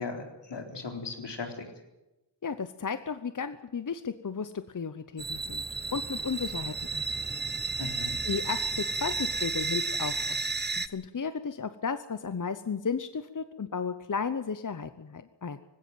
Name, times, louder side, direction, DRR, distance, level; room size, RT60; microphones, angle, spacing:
voice 1, 0.0-1.7 7.8-8.2, left 4 dB, 80° left, 4 dB, 4.1 m, -37 dB
voice 2, 2.4-5.6 5.9-7.0 7.3-7.4 8.2-10.4 10.8-15.6, left 5 dB, 45° left, 11 dB, 1.0 m, -34 dB
sound 1, 5.2-10.9, right 4 dB, 25° right, 1.0 m, -32 dB
19.5 x 17.0 x 9.3 m, 0.96 s
wide cardioid pair, 95°, 42 cm